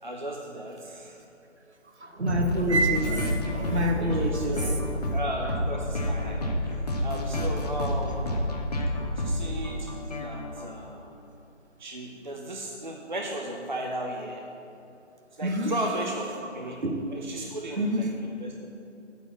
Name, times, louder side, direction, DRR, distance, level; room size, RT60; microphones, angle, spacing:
voice 1, 0.0-1.2 4.0-4.8 5.1-8.4 9.2-11.2 11.8-14.5 15.3-16.8 17.1-18.7, right 1 dB, 40° right, 1 dB, 0.5 m, -35 dB
voice 2, 2.0-4.7 15.4-15.7 16.4-16.5 16.8-17.0 17.8-18.1, right 1 dB, 60° right, 3 dB, 1.1 m, -27 dB
sound 1, 2.3-10.6, left 1 dB, 30° left, 0.7 m, -29 dB
8.8 x 4.2 x 7.0 m, 2.9 s
figure-of-eight pair, 155°, 37 cm